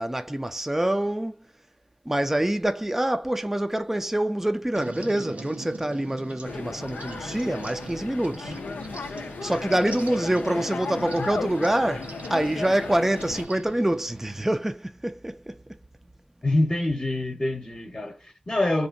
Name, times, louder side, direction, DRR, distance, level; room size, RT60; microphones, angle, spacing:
voice 1, 0.0-1.4 2.1-8.6 9.0-15.6, right 1 dB, 10° right, 0.3 m, -26 dB
sound 1, 4.7-14.6, right 3 dB, 65° right, 0.6 m, -42 dB
sound 2, 6.4-13.5, left 4 dB, 85° left, 0.4 m, -35 dB
voice 2, 16.4-18.9, left 1 dB, 30° left, 0.8 m, -25 dB
2.7 x 2.2 x 2.5 m
cardioid pair, 50°, 3 cm